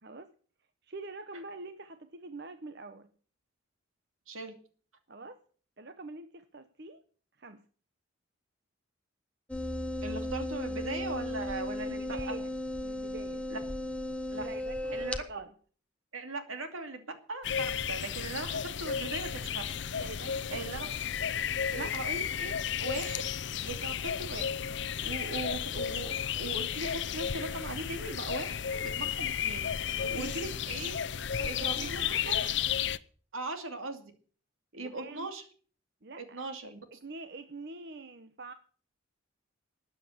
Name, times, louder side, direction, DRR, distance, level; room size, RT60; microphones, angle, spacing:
voice 1, 0.0-0.3 0.8-3.1 5.1-5.4 5.8-7.0 7.4-7.6 11.8-12.5 12.8-13.5 14.4-15.5 20.0-21.0 21.7-21.9 29.9-30.5 31.3-32.5 34.7-35.3 36.0-36.5 36.9-38.5, right 3 dB, 50° right, 10 dB, 0.9 m, -45 dB
sound 1, 9.5-15.2, left 1 dB, 5° left, 0.8 m, -35 dB
voice 2, 10.0-12.4 13.5-13.6 14.3-14.4 14.9-15.2 16.1-19.7 20.5-20.9 21.7-22.5 22.8-23.2 23.6-24.5 25.0-29.7 30.1-30.9 31.4-32.5 33.3-34.1 34.7-35.4 36.2-36.8, right 2 dB, 80° right, 7 dB, 2.6 m, -39 dB
sound 2, 17.4-33.0, left 8 dB, 60° left, 0.6 m, -33 dB
13.0 x 9.1 x 8.0 m, 0.43 s
head